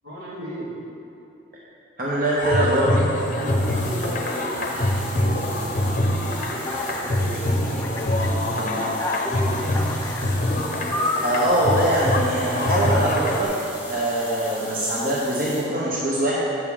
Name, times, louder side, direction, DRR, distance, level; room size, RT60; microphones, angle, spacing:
voice 1, 0.0-0.7 3.4-9.6, equal, 80° right, -6 dB, 1.8 m, -36 dB
voice 2, 2.0-3.0 11.2-13.5 13.8-16.4, right 1 dB, 45° right, -6 dB, 0.9 m, -22 dB
sound 1, 2.4-13.4, left 1 dB, 40° left, 0.7 m, -24 dB
sound 2, 3.2-15.6, left 1 dB, 10° right, 1.3 m, -40 dB
Alarm, 6.2-7.3 7.8-8.3 8.8-10.4 10.9-11.5, left 2 dB, 15° left, 0.3 m, -31 dB
8.1 x 6.5 x 3.7 m, 2.8 s
head